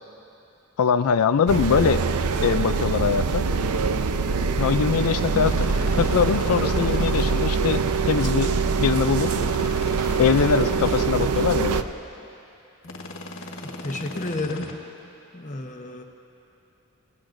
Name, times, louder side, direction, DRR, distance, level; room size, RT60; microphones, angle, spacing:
voice 1, 0.8-2.0 2.4-3.4 4.6-5.7 6.0-9.4 10.2-11.8, left 6 dB, 85° left, 9 dB, 0.4 m, -22 dB
sound 1, 1.5-11.8, right 5 dB, 90° right, 0.6 m, -24 dB
sound 2, 5.5-7.3 9.1-11.0 12.8-14.7, left 2 dB, 60° left, 1.5 m, -37 dB
voice 2, 13.8-14.8 15.3-16.0, left 2 dB, 35° left, 3 dB, 1.0 m, -31 dB
30.0 x 18.5 x 2.6 m, 2.8 s
head